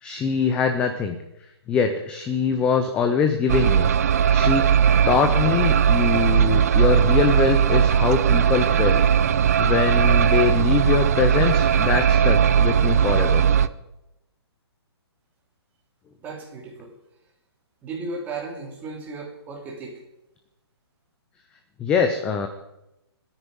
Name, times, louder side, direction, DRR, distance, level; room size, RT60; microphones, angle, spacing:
voice 1, 0.0-1.2 1.7-4.7 5.1-9.0 9.6-13.5 21.8-22.5, left 6 dB, 5° left, 7 dB, 0.5 m, -23 dB
sound 1, 3.5-13.7, right 8 dB, 35° right, 0.6 m, -18 dB
voice 2, 16.2-16.9 17.8-20.0, right 3 dB, 10° right, -1 dB, 2.7 m, -35 dB
26.0 x 9.9 x 5.4 m, 0.93 s
hypercardioid pair, 170°, 14 cm